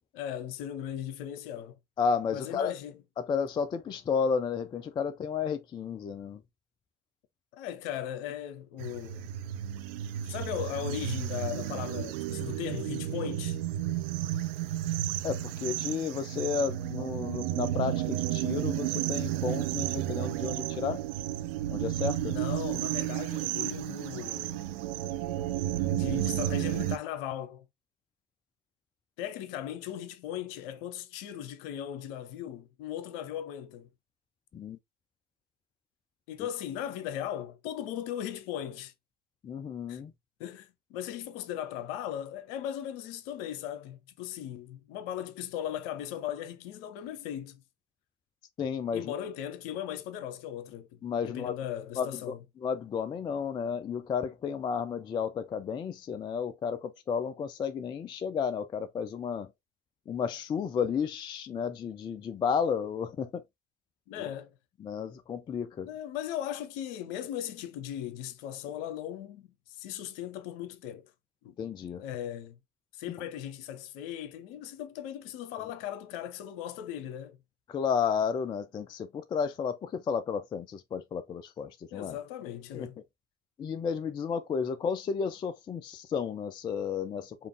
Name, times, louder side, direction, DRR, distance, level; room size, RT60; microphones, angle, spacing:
voice 1, 0.1-1.8 2.3-3.0 7.5-9.3 10.2-13.6 22.2-24.8 25.9-27.6 29.2-33.9 36.3-38.9 39.9-40.0 40.4-47.6 48.9-52.4 64.1-64.5 65.8-71.1 71.4-71.6 72.0-72.6 72.9-77.4 81.9-83.0, left 10 dB, 55° left, 0.8 m, -38 dB
voice 2, 2.0-2.7 3.2-6.4 15.2-21.0 21.7-22.3 34.5-34.8 39.4-40.1 48.6-49.0 51.0-51.6 52.0-52.1 52.6-59.5 60.1-63.4 64.1-64.3 64.8-65.9 71.6-72.0 77.7-82.2 82.7-82.9 83.6-87.5, left 6 dB, 15° left, 0.3 m, -32 dB
sound 1, 8.8-27.0, right 12 dB, 55° right, 0.6 m, -32 dB
5.1 x 2.6 x 3.3 m
figure-of-eight pair, 65°, 35 cm